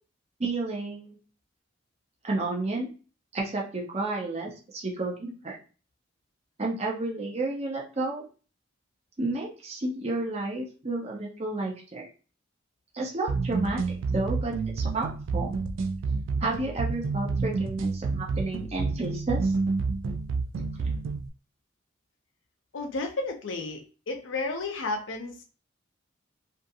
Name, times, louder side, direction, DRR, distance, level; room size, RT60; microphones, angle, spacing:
voice 1, 0.4-1.2 2.2-2.9 3.3-5.6 6.6-8.2 9.2-12.1 12.9-15.5 16.4-19.5, right 2 dB, 35° right, -2 dB, 0.6 m, -31 dB
sound 1, 13.3-21.3, right 4 dB, 80° right, 0.3 m, -29 dB
voice 2, 22.7-25.4, left 3 dB, 75° left, 4 dB, 0.6 m, -32 dB
2.6 x 2.4 x 2.7 m, 0.36 s
head